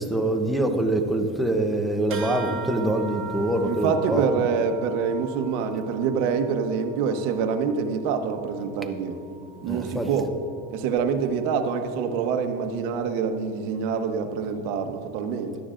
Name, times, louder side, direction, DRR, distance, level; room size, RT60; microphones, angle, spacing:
voice 1, 0.0-4.2 9.6-10.1, right 1 dB, ahead, 0.7 m, -24 dB
sound 1, 2.1-11.9, right 5 dB, 35° right, 1.4 m, -41 dB
voice 2, 3.6-9.2 9.6-10.3 10.7-15.6, right 6 dB, 80° right, 1.1 m, -26 dB
16.5 x 11.5 x 2.5 m
cardioid pair, 140°, 38 cm